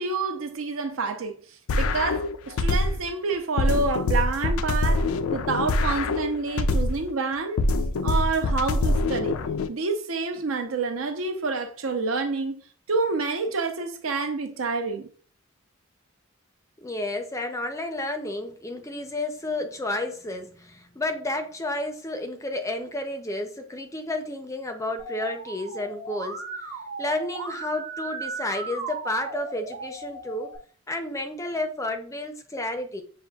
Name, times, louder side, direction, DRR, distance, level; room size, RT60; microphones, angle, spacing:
voice 1, 0.0-1.4 1.8-5.1 5.3-7.6 8.0-9.4 9.7-12.6 12.9-15.1, right 4 dB, 80° right, 0.7 m, -28 dB
sound 1, 1.7-3.1 3.6-7.1 7.6-9.7, left 2 dB, 90° left, 0.4 m, -24 dB
voice 2, 16.8-26.4 27.0-30.5 30.9-33.0, left 2 dB, 15° left, 0.4 m, -31 dB
Musical instrument, 25.0-30.6, right 4 dB, 45° right, 0.9 m, -36 dB
6.6 x 2.5 x 2.3 m
head